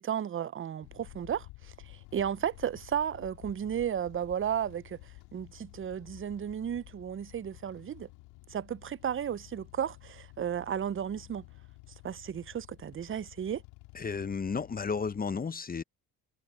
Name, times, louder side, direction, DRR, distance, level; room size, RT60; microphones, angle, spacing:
voice 1, 0.0-5.0 5.3-8.1 8.5-11.4 12.0-13.6, right 9 dB, 30° right, 0.6 m, -34 dB
sound 1, 0.8-15.3, left 22 dB, 85° left, 2.4 m, -52 dB
voice 2, 13.9-15.8, left 5 dB, 20° left, 0.7 m, -33 dB
supercardioid pair, 70°, 43 cm